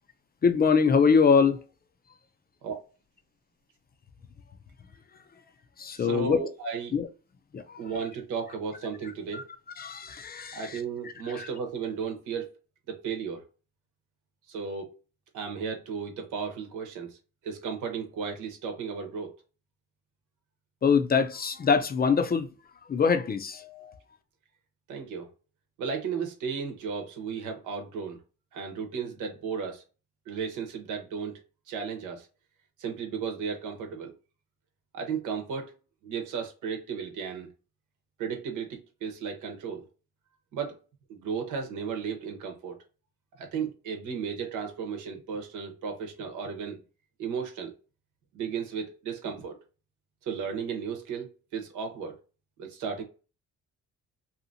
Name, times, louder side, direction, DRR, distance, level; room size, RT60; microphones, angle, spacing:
voice 1, 0.4-1.6 5.8-6.4 6.9-7.1 7.5-7.8 9.3-9.4 9.8-10.8 11.4-11.5 20.8-22.5 22.9-24.0, left 5 dB, 30° left, 0.5 m, -24 dB
voice 2, 5.9-6.9 7.8-9.4 10.5-12.5 12.9-13.4 14.5-14.9 15.3-17.2 17.4-19.4 24.9-25.3 25.8-28.2 28.5-29.8 30.3-32.3 32.8-34.1 34.9-35.7 36.0-37.5 38.2-39.9 40.5-40.8 41.1-42.8 43.4-46.8 47.2-47.7 48.3-49.6 50.3-52.2 52.6-53.0, right 6 dB, 85° right, 1.0 m, -34 dB
2.8 x 2.6 x 2.6 m
cardioid pair, 90°, 30 cm